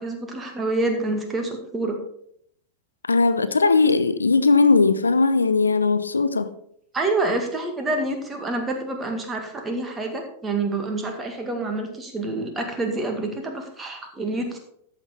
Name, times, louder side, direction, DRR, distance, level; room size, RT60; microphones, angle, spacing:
voice 1, 0.0-2.0 6.9-14.6, right 2 dB, 15° right, 3 dB, 2.0 m, -27 dB
voice 2, 3.0-6.5, left 4 dB, 75° left, 13 dB, 0.6 m, -19 dB
13.5 x 5.8 x 4.6 m, 0.69 s
figure-of-eight pair, 90°, 0 cm